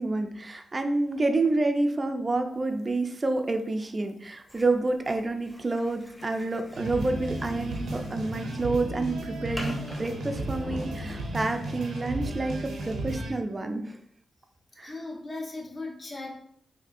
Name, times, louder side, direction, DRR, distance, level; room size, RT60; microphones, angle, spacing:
voice 1, 0.0-14.0 14.8-14.9, right 2 dB, 35° right, 6 dB, 0.4 m, -28 dB
sound 1, 2.8-12.1, left 3 dB, 75° left, 0.4 m, -46 dB
sound 2, 4.5-10.8, equal, 10° left, 0.9 m, -47 dB
sound 3, 6.7-13.3, right 2 dB, 85° right, 0.6 m, -34 dB
voice 2, 14.8-16.3, left 2 dB, 50° left, -1 dB, 1.0 m, -37 dB
4.1 x 2.6 x 2.5 m, 0.66 s
cardioid pair, 55°, 0 cm